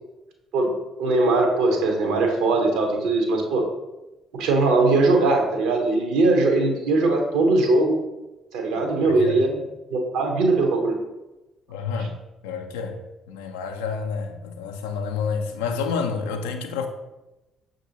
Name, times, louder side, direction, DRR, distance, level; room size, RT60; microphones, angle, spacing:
voice 1, 0.5-3.7 4.3-8.0 8.5-9.6 9.9-10.9 12.0-12.1, right 2 dB, 65° right, 0.6 m, -20 dB
voice 2, 8.7-9.4 11.7-12.1 12.4-16.9, left 5 dB, 75° left, 0.3 m, -29 dB
6.0 x 2.6 x 2.8 m
figure-of-eight pair, 45°, 0 cm